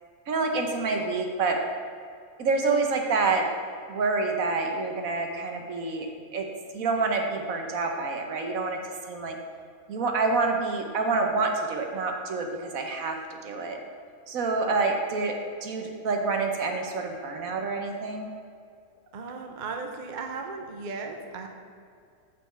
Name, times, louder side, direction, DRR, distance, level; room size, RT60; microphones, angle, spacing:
voice 1, 0.3-1.6 2.4-3.5 3.9-6.5 6.7-8.8 9.1-9.4 9.9-13.2 13.4-13.8 14.3-15.3 15.6-18.3, right 3 dB, 65° right, 3 dB, 1.3 m, -27 dB
voice 2, 19.1-21.5, right 4 dB, 45° right, 4 dB, 0.6 m, -36 dB
6.8 x 6.0 x 5.7 m, 2.3 s
omnidirectional pair, 1.6 m